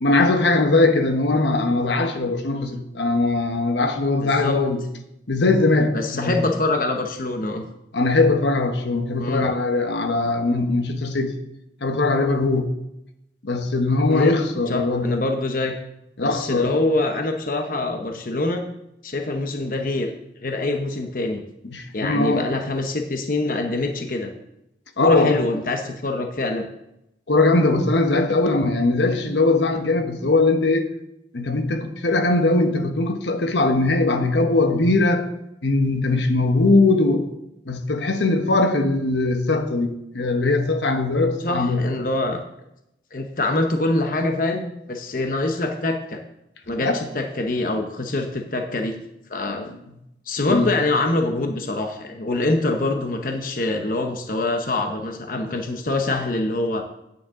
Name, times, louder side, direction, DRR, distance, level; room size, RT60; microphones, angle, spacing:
voice 1, 0.0-4.8 5.3-6.4 7.9-11.3 11.8-12.7 13.4-15.1 16.2-16.7 21.7-22.5 25.0-25.3 27.3-30.9 31.3-35.3 35.6-37.3 37.7-41.8 46.8-47.0 49.5-49.7 50.5-50.7, left 2 dB, 80° left, 6 dB, 1.0 m, -20 dB
voice 2, 4.2-4.6 5.9-7.6 9.2-9.5 14.1-14.4 14.7-15.8 16.2-18.6 19.0-20.1 20.4-21.4 21.9-24.3 25.0-26.7 41.4-42.4 43.1-46.2 46.7-49.0 49.3-49.6 50.3-56.8, left 2 dB, 50° left, 4 dB, 0.8 m, -24 dB
9.2 x 9.0 x 3.7 m, 0.85 s
head